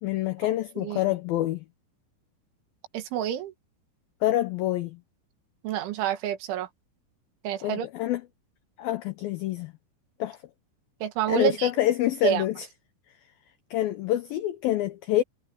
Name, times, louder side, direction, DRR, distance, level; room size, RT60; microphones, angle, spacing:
voice 1, 0.0-1.6 4.2-5.0 7.6-8.2 8.8-9.7 10.2-10.4 11.3-12.7 13.7-15.2, left 14 dB, 85° left, 2.0 m, -26 dB
voice 2, 2.9-3.5 5.6-6.7 7.4-7.9 11.0-11.7 12.2-12.4, right 10 dB, 85° right, 4.2 m, -28 dB
omnidirectional pair, 5.3 m